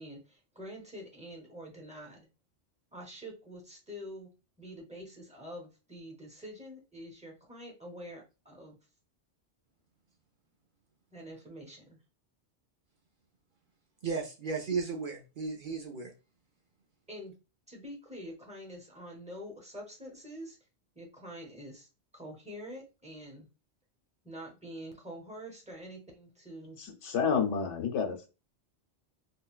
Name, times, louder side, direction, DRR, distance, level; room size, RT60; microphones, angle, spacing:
voice 1, 0.0-2.3 2.9-4.3 4.6-8.8 11.1-12.0 17.1-17.3 17.7-20.6 21.0-21.9 22.1-23.5 24.2-26.8, equal, 5° right, 0.7 m, -46 dB
voice 2, 14.0-16.1, right 4 dB, 55° right, 0.7 m, -35 dB
voice 3, 26.8-28.3, left 6 dB, 85° left, 1.0 m, -30 dB
3.6 x 2.3 x 2.3 m
omnidirectional pair, 1.2 m